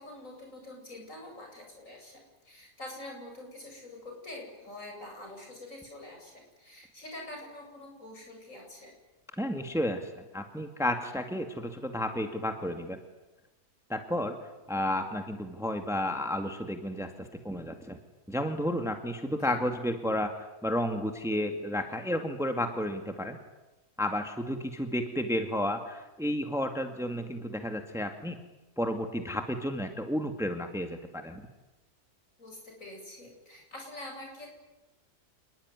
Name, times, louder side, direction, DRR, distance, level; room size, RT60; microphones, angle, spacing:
voice 1, 0.0-8.9 19.4-19.5 32.4-34.6, left 1 dB, 50° left, 1 dB, 8.5 m, -45 dB
voice 2, 9.4-13.0 13.9-14.4 14.7-18.0 18.3-23.4 24.0-28.4 28.8-31.5, left 1 dB, ahead, 5 dB, 2.0 m, -32 dB
28.5 x 20.5 x 9.8 m, 1.0 s
omnidirectional pair, 1.7 m